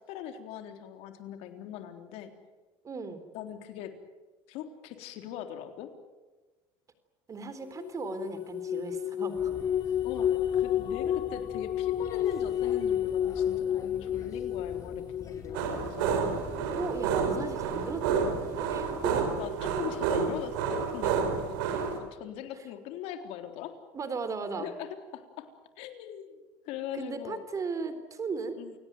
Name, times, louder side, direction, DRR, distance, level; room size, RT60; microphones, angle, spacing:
voice 1, 0.1-2.3 3.3-3.9 4.5-5.9 10.0-16.2 19.0-21.6 22.0-23.7 24.6-25.5 25.8-26.4 26.7-27.4 28.6-28.8, left 10 dB, 70° left, 6 dB, 3.8 m, -41 dB
voice 2, 2.8-3.2 7.3-9.6 16.8-19.1 23.9-24.7 26.9-28.6, right 4 dB, 30° right, 11 dB, 3.8 m, -36 dB
sound 1, 7.8-15.6, left 10 dB, 45° left, 1.0 m, -30 dB
sound 2, 9.3-19.5, left 4 dB, 30° left, 5.1 m, -47 dB
sound 3, 15.5-22.0, right 6 dB, 90° right, 4.8 m, -30 dB
29.0 x 18.0 x 9.4 m, 1.2 s
supercardioid pair, 115°, 11 cm